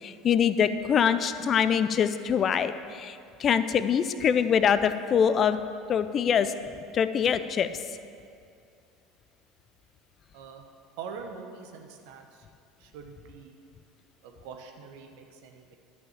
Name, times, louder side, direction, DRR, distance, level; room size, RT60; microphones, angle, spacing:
voice 1, 0.0-5.6 5.9-6.5 6.9-7.7, left 7 dB, 40° left, 12 dB, 0.6 m, -24 dB
voice 2, 10.3-10.7 11.0-12.5 12.8-13.6 14.2-15.8, right 6 dB, 65° right, 3 dB, 1.2 m, -44 dB
11.0 x 5.8 x 7.5 m, 2.4 s
hypercardioid pair, 75°, 0 cm